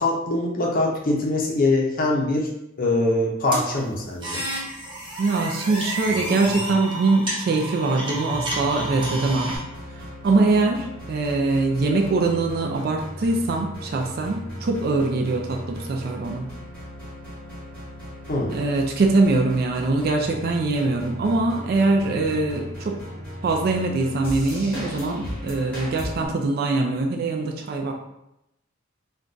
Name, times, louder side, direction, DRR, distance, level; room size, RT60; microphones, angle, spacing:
voice 1, 0.0-2.5 2.8-4.4 18.3-18.5, left 2 dB, 45° left, -1 dB, 0.5 m, -23 dB
sound 1, 3.5-9.6, right 1 dB, 25° right, 0.8 m, -30 dB
voice 2, 5.2-9.5 9.9-16.5 18.5-23.0 23.4-27.9, right 3 dB, 50° right, 2 dB, 0.3 m, -23 dB
sound 2, 8.3-26.3, equal, 5° left, 1.0 m, -37 dB
2.5 x 2.2 x 3.7 m, 0.84 s
head